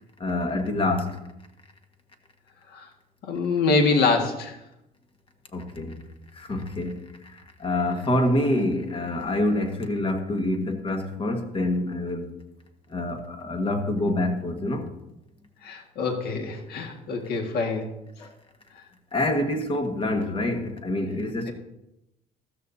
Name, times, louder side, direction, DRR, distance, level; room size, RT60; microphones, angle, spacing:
voice 1, 0.2-1.2 5.5-6.0 6.3-12.3 12.9-14.9 18.2-18.3 19.1-21.5, left 1 dB, 30° left, 1.6 m, -26 dB
voice 2, 3.2-4.6 15.6-17.9, left 4 dB, 70° left, 1.9 m, -25 dB
14.0 x 13.5 x 2.8 m
cardioid pair, 110°, 17 cm